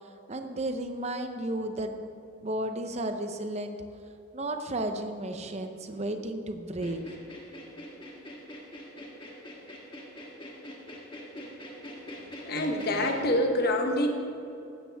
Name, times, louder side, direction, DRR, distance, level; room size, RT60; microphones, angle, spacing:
voice 1, 0.3-2.0 2.4-3.8 4.3-7.0, right 1 dB, 30° right, 6 dB, 0.8 m, -33 dB
sound 1, 6.7-13.2, equal, 25° left, 1.6 m, -43 dB
voice 2, 12.4-14.1, left 1 dB, 45° left, 4 dB, 1.2 m, -26 dB
16.0 x 12.5 x 3.5 m, 2.7 s
head